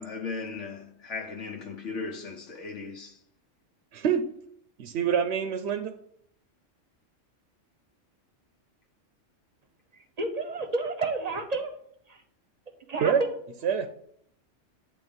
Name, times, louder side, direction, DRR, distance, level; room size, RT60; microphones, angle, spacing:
voice 1, 0.0-3.2, left 4 dB, 75° left, 1.2 m, -37 dB
voice 2, 3.9-4.3 4.8-5.9 13.0-13.2 13.6-13.9, right 7 dB, 65° right, 0.8 m, -26 dB
voice 3, 10.2-11.7 12.1-12.2 12.9-13.4, right 3 dB, 35° right, 0.8 m, -30 dB
9.1 x 3.5 x 5.2 m
omnidirectional pair, 1.3 m